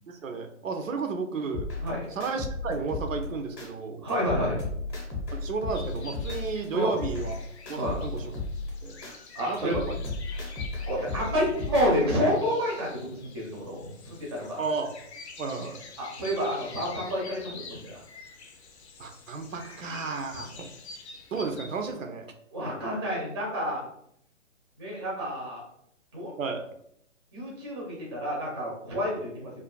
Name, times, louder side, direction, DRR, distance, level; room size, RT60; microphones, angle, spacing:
voice 1, 0.1-1.7 2.1-4.0 5.3-7.3 7.7-8.3 8.8-9.0 9.5-10.0 14.6-14.9 15.4-15.8 19.0-20.7 21.3-22.3 26.4-26.6, right 4 dB, 85° right, 5 dB, 0.5 m, -32 dB
sound 1, 1.5-3.7 4.1-6.7 7.0-9.1 9.5-12.1, left 3 dB, 20° left, 0.6 m, -34 dB
voice 2, 4.0-4.6 6.7-7.0 7.8-8.0 9.3-9.8 10.9-14.6 16.0-18.0 22.5-23.8 24.8-25.6 26.1-26.3 27.3-29.6, equal, 20° right, -4 dB, 0.4 m, -29 dB
sound 2, 5.7-21.9, left 4 dB, 60° left, 0.5 m, -47 dB
2.4 x 2.3 x 2.3 m, 0.71 s
figure-of-eight pair, 140°, 38 cm